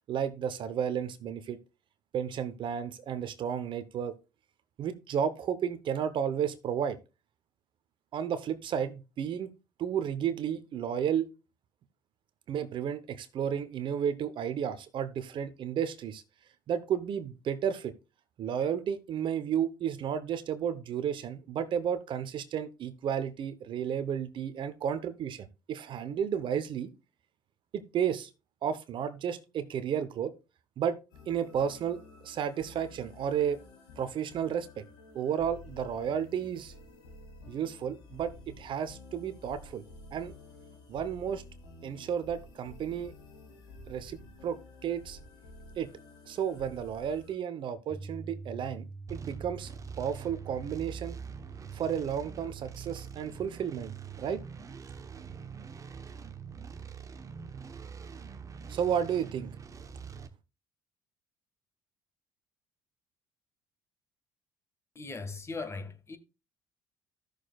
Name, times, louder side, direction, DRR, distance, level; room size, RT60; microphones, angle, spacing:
voice 1, 0.1-1.6 2.1-4.1 4.8-7.0 8.1-9.5 9.8-11.3 12.5-16.2 16.7-17.9 18.4-26.9 27.7-28.3 28.6-30.3 30.8-31.0 31.3-33.6 34.0-34.8 35.1-36.7 37.5-39.8 40.1-40.3 40.9-41.4 41.8-43.1 43.9-45.2 45.8-45.9 46.3-49.7 50.0-51.2 51.7-54.4 58.7-59.5, right 8 dB, 55° right, 0.9 m, -32 dB
sound 1, 31.1-47.3, left 2 dB, 85° left, 2.4 m, -51 dB
Piano, 47.9-56.0, right 3 dB, ahead, 1.3 m, -49 dB
sound 2, 49.1-60.3, right 6 dB, 30° right, 1.0 m, -44 dB
voice 2, 64.9-66.2, left 3 dB, 25° left, 1.6 m, -39 dB
14.0 x 6.6 x 2.4 m
hypercardioid pair, 60°, 10 cm